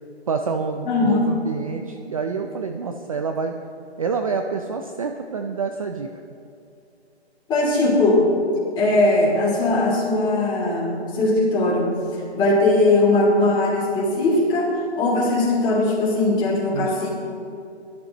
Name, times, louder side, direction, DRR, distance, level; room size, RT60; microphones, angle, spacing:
voice 1, 0.3-3.5 4.0-6.1 16.7-17.0, right 5 dB, 30° right, 5 dB, 0.5 m, -27 dB
voice 2, 0.8-1.3 7.5-8.3 8.8-11.9 12.3-17.1, left 2 dB, 15° left, -5 dB, 2.9 m, -19 dB
19.0 x 13.0 x 3.0 m, 2.7 s
figure-of-eight pair, 145°, 33 cm